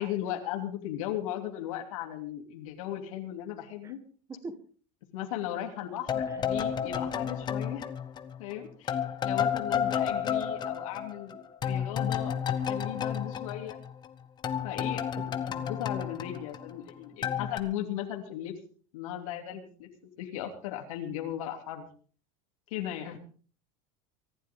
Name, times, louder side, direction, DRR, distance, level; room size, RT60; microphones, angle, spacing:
voice 1, 0.0-4.0 5.1-7.8 8.4-11.4 11.6-13.8 14.6-18.5 18.9-19.9 20.2-21.9 22.7-23.2, left 11 dB, 85° left, 3 dB, 3.0 m, -37 dB
voice 2, 3.8-3.9 4.3-4.5 6.3-6.4 15.2-15.3, right 3 dB, 15° right, 11 dB, 1.6 m, -41 dB
sound 1, 6.1-8.5 8.9-14.1 14.4-16.9 17.2-17.6, left 8 dB, 25° left, 1.1 m, -31 dB
24.5 x 11.5 x 3.8 m, 0.42 s
supercardioid pair, 150°, 17 cm